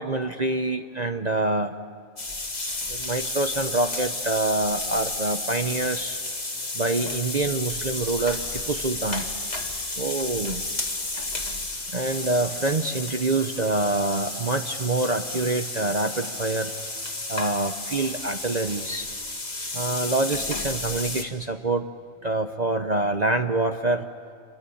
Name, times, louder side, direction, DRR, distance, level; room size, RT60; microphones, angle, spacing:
voice 1, 0.0-1.7 2.9-6.2 6.7-9.2 10.0-10.6 11.9-16.7 17.3-19.1 19.7-21.9 22.2-24.1, right 2 dB, 35° right, 7 dB, 0.8 m, -26 dB
sound 1, 2.2-21.2, left 2 dB, 30° left, 2.1 m, -32 dB
28.0 x 24.5 x 8.6 m, 2.4 s
omnidirectional pair, 1.5 m